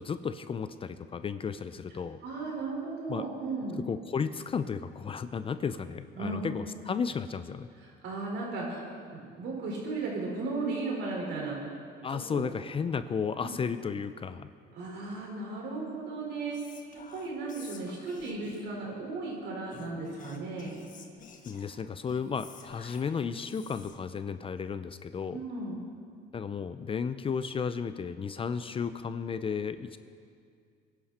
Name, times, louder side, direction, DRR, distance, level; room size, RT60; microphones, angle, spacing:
voice 1, 0.0-2.2 3.1-3.3 3.7-7.7 12.0-14.5 21.5-25.4 26.3-30.0, left 6 dB, 30° left, 12 dB, 0.6 m, -33 dB
voice 2, 2.2-3.8 6.1-6.4 7.8-8.8 9.1-11.6 12.1-12.5 13.4-13.5 14.7-16.8 17.1-20.7 25.3-25.8, right 3 dB, 70° right, -2 dB, 4.9 m, -35 dB
Whispering, 16.5-18.8 19.7-24.1, left 6 dB, 45° left, 1.5 m, -51 dB
24.0 x 11.0 x 4.3 m, 2.3 s
cardioid pair, 115°, 19 cm